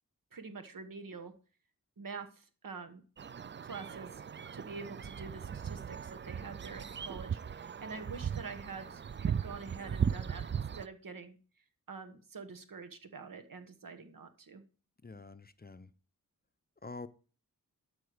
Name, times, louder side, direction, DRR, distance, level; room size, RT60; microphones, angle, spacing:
voice 1, 0.3-1.3 2.0-3.0 3.6-4.2 4.5-11.4 11.9-14.6, right 4 dB, 70° right, 8 dB, 1.3 m, -46 dB
sound 1, 3.2-10.9, right 7 dB, 35° right, 0.4 m, -38 dB
voice 2, 15.0-15.9 16.8-17.1, left 3 dB, 30° left, 12 dB, 0.6 m, -46 dB
12.5 x 4.8 x 5.0 m, 0.37 s
wide cardioid pair, 65°, 34 cm